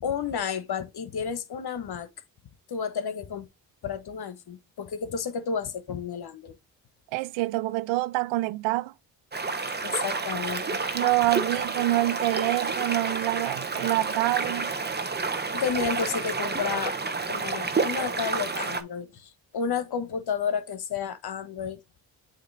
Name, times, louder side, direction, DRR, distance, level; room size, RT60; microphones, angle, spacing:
voice 1, 0.0-2.1 2.7-3.5 3.8-6.6 9.8-10.8 15.5-17.0 17.3-22.0, left 6 dB, 55° left, 1.2 m, -31 dB
voice 2, 7.1-8.9 10.9-14.7, right 18 dB, 80° right, 0.5 m, -26 dB
sound 1, 9.3-18.8, right 4 dB, 20° right, 1.1 m, -29 dB
8.3 x 3.0 x 4.0 m
supercardioid pair, 50°, 45 cm